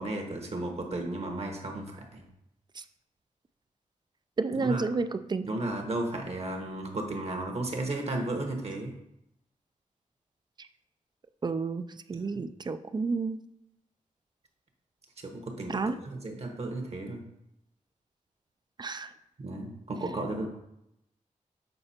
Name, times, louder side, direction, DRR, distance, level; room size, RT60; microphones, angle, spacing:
voice 1, 0.0-2.2 4.5-4.8 5.4-8.9 12.1-12.4 15.2-17.2 19.4-20.5, right 2 dB, 50° right, 3 dB, 1.2 m, -34 dB
voice 2, 4.4-5.5 11.4-13.4 15.7-16.0 18.8-19.1, right 4 dB, 35° right, 11 dB, 0.3 m, -31 dB
6.8 x 4.3 x 4.3 m, 0.83 s
wide cardioid pair, 110°, 13 cm